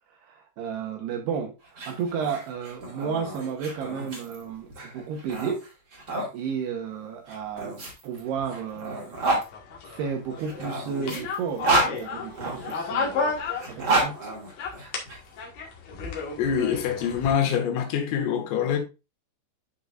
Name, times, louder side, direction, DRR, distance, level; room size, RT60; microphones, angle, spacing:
voice 1, 0.1-5.7 6.3-7.8 8.0-9.2 9.8-13.3 13.7-14.3, right 6 dB, 75° right, 2.6 m, -32 dB
sound 1, 1.6-6.3 7.3-9.5 10.4-12.7 13.5-15.2, right 2 dB, 35° right, 1.7 m, -29 dB
sound 2, 9.1-14.2 14.5-17.3, left 4 dB, 55° left, 2.5 m, -33 dB
voice 2, 16.4-18.8, left 8 dB, 85° left, 4.3 m, -25 dB
11.5 x 5.4 x 2.5 m
omnidirectional pair, 5.7 m